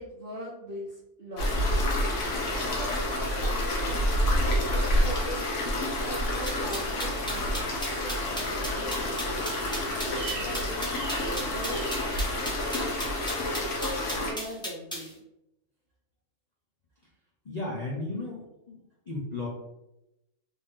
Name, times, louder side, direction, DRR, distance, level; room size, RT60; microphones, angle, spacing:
voice 1, 0.0-2.1 2.5-5.5 6.0-9.2 9.7-15.2, equal, 55° right, -6 dB, 0.6 m, -41 dB
sound 1, 1.4-14.3, left 1 dB, 55° left, 1.1 m, -28 dB
sound 2, 6.5-15.1, equal, 5° left, 0.6 m, -36 dB
sound 3, 7.9-13.3, right 5 dB, 70° right, 1.1 m, -44 dB
voice 2, 17.5-18.8 19.1-19.5, left 2 dB, 90° left, -4 dB, 0.3 m, -34 dB
3.6 x 2.6 x 3.5 m, 0.90 s
omnidirectional pair, 1.7 m